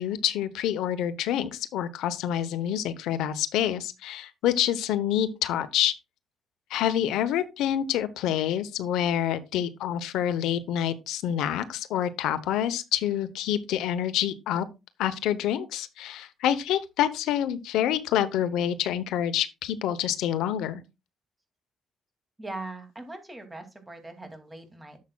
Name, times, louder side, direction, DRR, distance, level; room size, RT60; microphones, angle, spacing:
voice 1, 0.0-5.9 6.7-14.7 15.0-20.8, left 10 dB, 90° left, 0.8 m, -27 dB
voice 2, 22.4-25.0, right 2 dB, 15° right, 2.4 m, -40 dB
11.5 x 7.3 x 2.3 m
cardioid pair, 90°, 0 cm